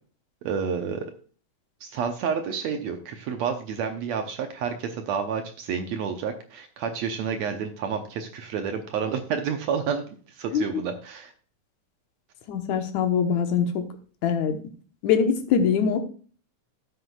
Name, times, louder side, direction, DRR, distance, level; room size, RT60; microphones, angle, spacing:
voice 1, 0.4-1.1 1.8-10.1 10.4-11.3, right 6 dB, 70° right, 6 dB, 1.8 m, -29 dB
voice 2, 12.5-13.8 14.2-14.6 15.0-16.1, left 7 dB, 65° left, 6 dB, 2.3 m, -23 dB
13.0 x 7.7 x 2.3 m, 0.42 s
omnidirectional pair, 3.8 m